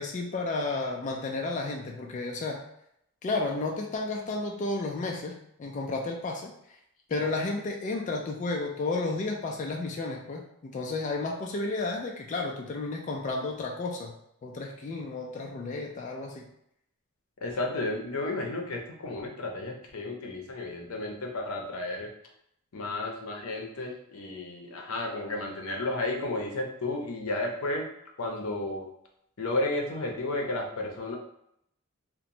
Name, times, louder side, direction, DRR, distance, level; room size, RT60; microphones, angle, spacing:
voice 1, 0.0-2.6 3.2-6.5 7.1-14.1 14.4-16.5, left 3 dB, 35° left, 0 dB, 0.3 m, -32 dB
voice 2, 17.4-22.1 22.7-27.9 28.2-28.9 29.4-31.2, left 2 dB, 90° left, 2 dB, 0.6 m, -32 dB
2.9 x 2.1 x 2.6 m, 0.75 s
head